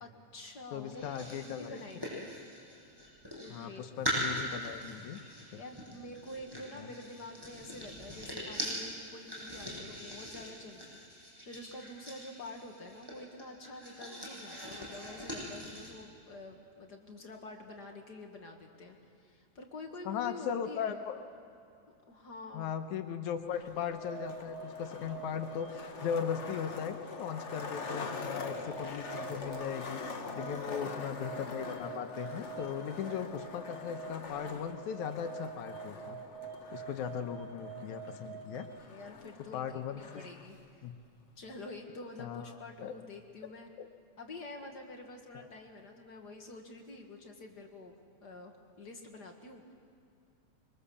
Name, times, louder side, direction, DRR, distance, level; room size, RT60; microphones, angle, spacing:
voice 1, 0.0-1.1 1.3-2.3 3.3-3.8 5.5-21.0 21.9-22.7 30.3-31.1 38.8-40.9 41.4-43.7 44.2-48.0 48.2-49.7, left 2 dB, 40° left, 2 dB, 2.0 m, -48 dB
voice 2, 0.7-1.8 3.5-5.2 5.5-5.6 6.8-6.9 20.1-21.2 22.5-30.0 30.4-36.2 36.7-38.7 39.5-40.2 40.8-40.9 42.2-42.5 42.8-42.9 43.8-43.9 45.3-45.5, left 8 dB, 85° left, 7 dB, 2.4 m, -38 dB
sound 1, 0.9-3.6 4.0-15.9, equal, 5° right, 7.3 m, -41 dB
Skateboard, 23.5-40.5, left 4 dB, 60° left, 0.7 m, -44 dB
sound 2, 23.9-38.6, right 6 dB, 75° right, 4.2 m, -47 dB
25.5 x 23.5 x 7.1 m, 2.4 s
omnidirectional pair, 3.3 m